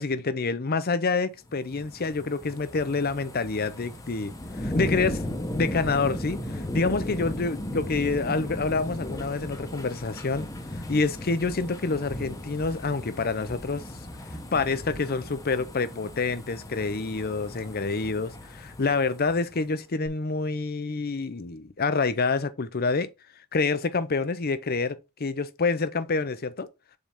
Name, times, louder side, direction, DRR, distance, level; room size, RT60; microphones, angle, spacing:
voice 1, 0.0-4.3 4.6-5.2 5.6-10.5 10.9-13.8 14.5-23.1 23.5-26.7, left 4 dB, 45° left, 0.7 m, -27 dB
sound 1, 1.5-19.6 20.1-20.2, left 1 dB, 15° left, 1.0 m, -36 dB
7.1 x 4.0 x 3.6 m
head